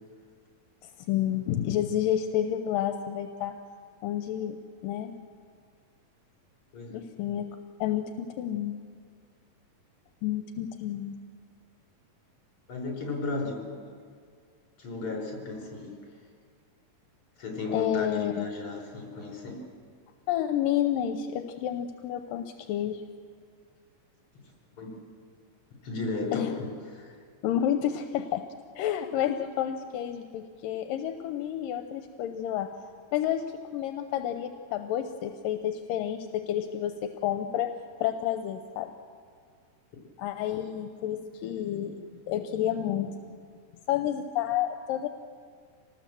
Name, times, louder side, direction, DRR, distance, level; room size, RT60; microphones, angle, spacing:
voice 1, 0.8-3.6 4.0-4.6 4.8-5.1 6.9-7.5 7.8-8.8 10.2-11.2 17.7-18.5 20.3-23.0 26.3-26.5 27.4-28.5 28.8-32.7 33.1-33.4 33.7-37.7 38.0-38.9 40.2-43.2 43.9-45.1, left 10 dB, 80° left, 7 dB, 2.5 m, -30 dB
voice 2, 12.7-13.7 14.8-16.0 17.4-19.6 24.8-25.0 25.8-27.2, left 3 dB, 40° left, 1 dB, 5.4 m, -34 dB
25.5 x 19.5 x 7.6 m, 2.1 s
omnidirectional pair, 3.9 m